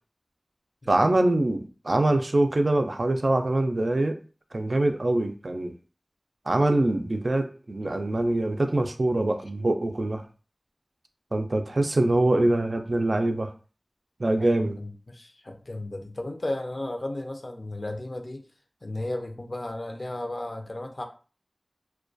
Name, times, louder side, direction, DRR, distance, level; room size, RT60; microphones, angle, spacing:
voice 1, 0.9-4.2 4.5-5.7 6.5-10.2 11.3-13.5 14.2-14.8, right 2 dB, 75° right, 6 dB, 0.3 m, -24 dB
voice 2, 14.4-18.4 18.8-21.0, left 1 dB, 65° left, 3 dB, 0.4 m, -34 dB
2.2 x 2.2 x 2.5 m, 0.37 s
wide cardioid pair, 45°, 0 cm